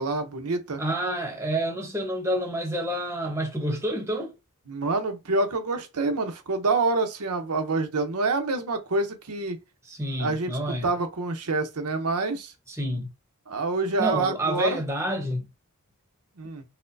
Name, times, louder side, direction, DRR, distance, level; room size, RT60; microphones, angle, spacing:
voice 1, 0.0-0.8 4.7-9.6 10.2-10.5 10.8-12.5 13.5-14.8 16.4-16.6, right 3 dB, 85° right, 0.8 m, -27 dB
voice 2, 0.8-4.3 9.8-10.9 12.7-13.1 14.0-15.4, right 1 dB, 15° right, 0.9 m, -28 dB
4.2 x 2.1 x 2.6 m
head